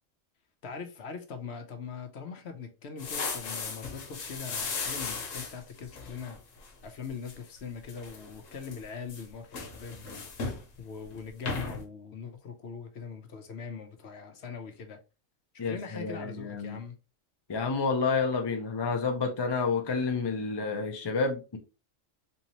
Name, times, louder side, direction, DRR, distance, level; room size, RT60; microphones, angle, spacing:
voice 1, 0.6-6.4 6.8-15.0 15.5-17.0, left 6 dB, 65° left, 0.8 m, -42 dB
sound 1, 3.0-6.7 7.0-7.3 7.8-8.8 9.1-10.7 11.0-11.2 11.5-11.8, left 4 dB, 80° left, 1.2 m, -36 dB
voice 2, 15.6-16.8 17.5-21.6, left 4 dB, 35° left, 0.4 m, -29 dB
3.6 x 2.8 x 2.8 m
omnidirectional pair, 1.3 m